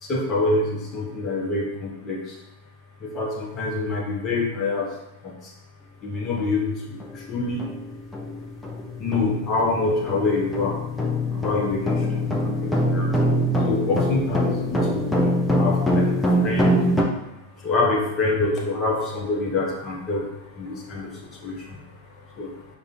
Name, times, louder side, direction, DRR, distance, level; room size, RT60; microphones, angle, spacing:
voice 1, 0.0-2.4 3.0-5.5 6.0-7.7 9.0-10.9 11.3-13.2 13.6-15.3 15.6-22.8, left 3 dB, 30° left, -1 dB, 0.9 m, -27 dB
sound 1, 6.4-6.5 7.0-7.2 7.6-17.0, equal, 10° left, 0.6 m, -24 dB
6.5 x 2.3 x 2.6 m, 0.91 s
figure-of-eight pair, 90°, 0 cm